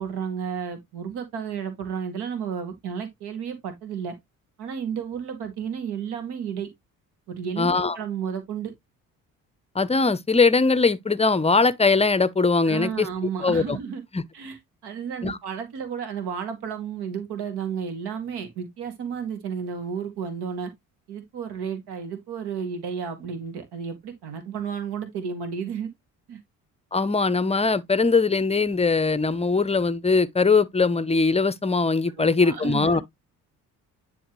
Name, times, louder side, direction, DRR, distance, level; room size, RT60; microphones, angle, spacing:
voice 1, 0.0-4.1 4.6-6.7 7.3-8.7 12.6-14.0 14.3-20.7 21.1-25.9 26.3-26.4 32.2-33.0, right 7 dB, 65° right, 1.9 m, -32 dB
voice 2, 7.6-8.0 9.7-13.1 13.4-13.8 14.1-14.2 15.2-15.4 26.9-33.0, left 4 dB, 15° left, 0.7 m, -21 dB
10.0 x 3.4 x 3.1 m
hypercardioid pair, 50°, 43 cm